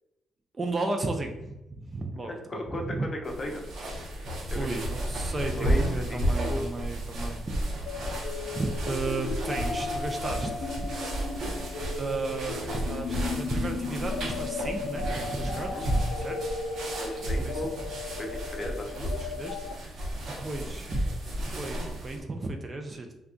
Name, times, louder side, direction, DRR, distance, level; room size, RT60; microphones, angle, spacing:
voice 1, 0.5-3.1 4.5-7.4 8.5-10.7 12.0-16.4 17.4-17.7 19.2-19.6 20.4-21.0 21.4-23.1, right 2 dB, 30° right, 4 dB, 0.4 m, -34 dB
voice 2, 2.3-3.1 3.4-3.6 4.5-4.7 5.5-6.6 15.5-15.9 17.0-17.7 18.2-19.1, left 1 dB, 35° left, 2 dB, 0.6 m, -36 dB
sound 1, 3.2-22.2, right 1 dB, 60° right, 0.8 m, -33 dB
sound 2, 7.8-19.7, left 4 dB, 85° left, 0.4 m, -36 dB
2.3 x 2.3 x 3.7 m, 0.93 s
cardioid pair, 90°, 0 cm